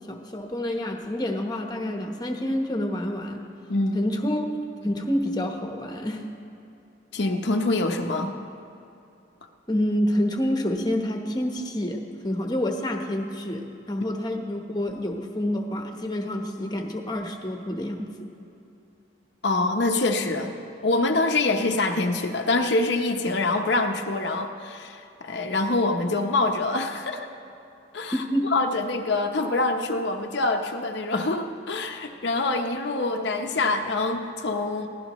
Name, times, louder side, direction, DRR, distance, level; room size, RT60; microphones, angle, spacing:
voice 1, 0.1-3.4 3.9-4.5 4.8-6.2 9.7-18.1 28.1-28.5, left 1 dB, 20° left, 3 dB, 1.0 m, -28 dB
voice 2, 3.7-4.1 7.1-8.3 19.4-20.6 20.8-27.3 27.9-34.9, left 2 dB, 65° left, 3 dB, 0.8 m, -25 dB
23.0 x 16.5 x 3.1 m, 2.8 s
head